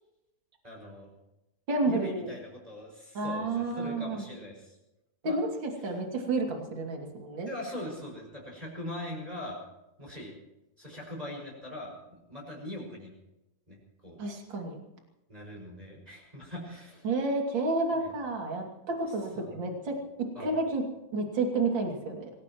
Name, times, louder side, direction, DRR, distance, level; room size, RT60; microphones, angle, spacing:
voice 1, 0.6-1.1 1.8-4.8 5.2-5.4 5.8-5.9 7.5-9.6 10.0-10.3 10.8-13.1 13.7-13.8 14.0-14.2 15.3-17.1 17.9-18.1 19.3-19.5 20.3-20.5, left 1 dB, 10° right, -2 dB, 5.8 m, -41 dB
voice 2, 1.7-2.3 3.1-4.3 5.2-7.5 14.2-14.8 17.0-20.8 21.1-22.3, right 2 dB, 35° right, 1 dB, 3.0 m, -30 dB
26.5 x 18.0 x 3.1 m, 0.92 s
omnidirectional pair, 4.2 m